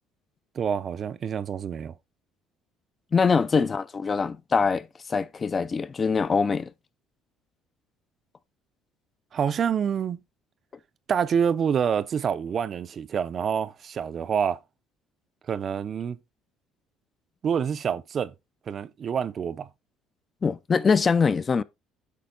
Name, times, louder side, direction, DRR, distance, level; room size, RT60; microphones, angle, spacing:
voice 1, 0.5-2.0 3.6-3.7 9.3-10.2 11.1-14.6 15.5-16.2 17.4-18.3 18.7-19.7, right 7 dB, 35° right, 0.5 m, -27 dB
voice 2, 3.1-6.7 20.4-21.6, left 5 dB, 25° left, 0.4 m, -23 dB
8.4 x 5.6 x 3.8 m
cardioid pair, 145°, 0 cm